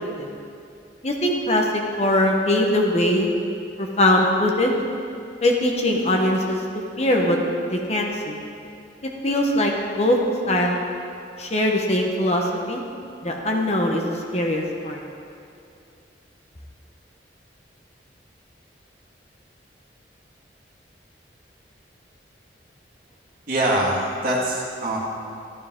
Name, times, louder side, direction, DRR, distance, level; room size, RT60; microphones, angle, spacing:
voice 1, 1.0-1.7 2.0-3.3 3.8-4.7 5.4-6.6 7.0-7.4 7.7-8.4 9.0-10.2 10.5-10.8 11.4-12.8 13.2-15.0, left 1 dB, 35° left, 0 dB, 1.0 m, -21 dB
voice 2, 23.5-25.0, right 1 dB, 50° right, -4 dB, 2.1 m, -23 dB
12.5 x 12.0 x 3.7 m, 2.5 s
head